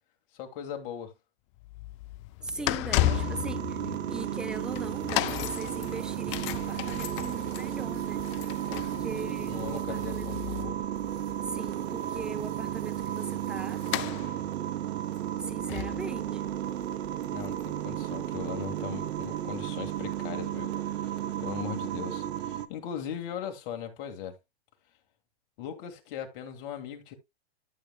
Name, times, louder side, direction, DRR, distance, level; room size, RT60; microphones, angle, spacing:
voice 1, 0.3-1.1 2.6-3.2 8.7-10.8 17.3-24.4 25.6-27.1, left 9 dB, 45° left, 2.1 m, -39 dB
sound 1, 1.6-18.6 19.2-19.3, left 16 dB, 30° left, 0.4 m, -35 dB
voice 2, 2.4-10.3 11.4-13.8 15.4-16.4, right 3 dB, ahead, 0.7 m, -41 dB
sound 2, 3.0-22.7, right 11 dB, 70° right, 1.0 m, -33 dB
sound 3, 4.5-10.6 10.9-14.1, right 7 dB, 45° right, 2.8 m, -56 dB
12.5 x 7.0 x 2.2 m
hypercardioid pair, 140°, 33 cm